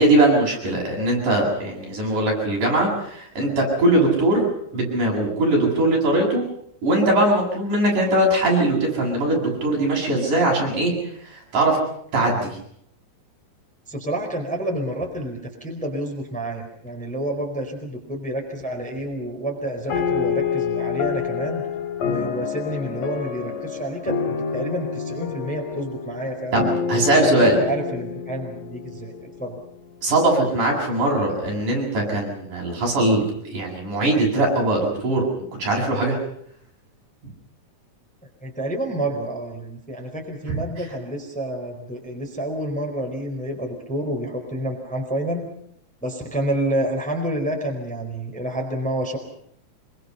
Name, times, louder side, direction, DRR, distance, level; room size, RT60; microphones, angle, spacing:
voice 1, 0.0-4.5 4.7-6.5 6.8-10.9 11.5-11.8 12.1-12.6 26.5-27.6 30.0-36.2 40.5-40.6, right 1 dB, 65° right, -1 dB, 9.5 m, -20 dB
voice 2, 13.9-21.6 22.0-26.7 27.2-29.6 38.4-45.5 46.0-49.2, right 1 dB, ahead, 2 dB, 4.1 m, -29 dB
sound 1, 19.9-29.6, left 6 dB, 75° left, 4.2 m, -28 dB
26.0 x 24.0 x 5.7 m, 0.69 s
omnidirectional pair, 3.9 m